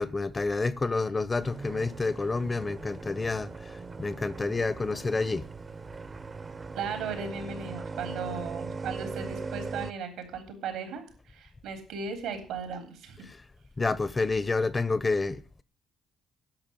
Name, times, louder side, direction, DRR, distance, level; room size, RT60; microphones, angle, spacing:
voice 1, 0.0-5.4 13.8-15.6, left 3 dB, 25° left, 0.8 m, -29 dB
sound 1, 1.4-9.9, right 4 dB, 35° right, 0.8 m, -39 dB
voice 2, 6.7-13.3, right 5 dB, 90° right, 3.5 m, -37 dB
10.5 x 6.5 x 9.2 m
cardioid pair, 90°, 0 cm